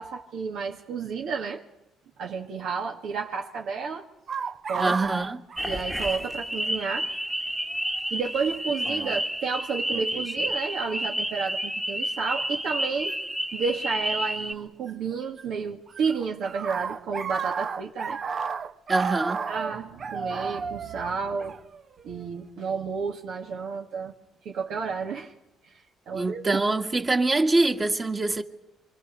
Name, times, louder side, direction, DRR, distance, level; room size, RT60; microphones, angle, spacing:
voice 1, 0.0-1.6 2.2-4.1 4.7-5.0 5.6-7.2 8.1-13.2 13.5-18.2 19.5-21.6 22.0-24.1 24.4-25.3 25.7-26.6, right 5 dB, 70° right, 2.1 m, -31 dB
sound 1, 4.3-6.4 6.6-6.7 7.7-8.0 9.0-9.2 10.0-10.4 13.1-13.2 14.5-15.4 15.7-22.2, right 5 dB, 40° right, 0.9 m, -33 dB
voice 2, 4.8-5.4 18.9-19.4 26.1-28.4, right 2 dB, 20° right, 1.9 m, -24 dB
sound 2, 5.6-14.5, equal, 5° right, 1.5 m, -30 dB
26.0 x 25.0 x 6.7 m
cardioid pair, 105°, 0 cm